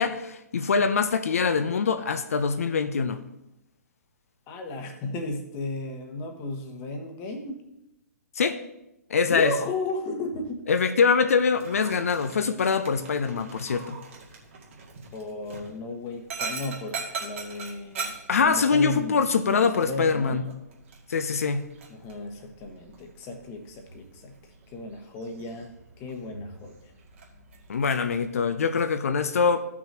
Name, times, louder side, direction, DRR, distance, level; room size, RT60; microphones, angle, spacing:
voice 1, 0.0-3.2 8.4-8.6 9.1-9.5 10.7-14.0 18.3-20.4 21.1-21.6 27.7-29.6, left 5 dB, 60° left, 0.6 m, -24 dB
voice 2, 4.5-7.6 9.3-10.6 15.1-20.4 21.9-26.8, left 2 dB, 25° left, 1.3 m, -34 dB
Dog, 11.5-28.1, right 5 dB, 50° right, 2.1 m, -42 dB
14.5 x 6.1 x 2.8 m
figure-of-eight pair, 125°, 9 cm